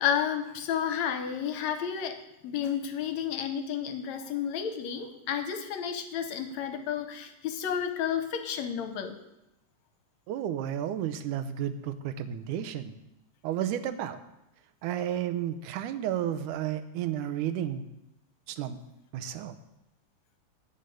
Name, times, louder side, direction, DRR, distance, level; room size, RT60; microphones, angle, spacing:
voice 1, 0.0-9.2, left 8 dB, 75° left, 8 dB, 1.9 m, -31 dB
voice 2, 10.3-12.9 13.4-14.2 14.8-17.8 18.5-18.8 19.1-19.6, right 10 dB, 85° right, 11 dB, 2.2 m, -32 dB
13.5 x 5.4 x 9.0 m, 0.90 s
omnidirectional pair, 3.6 m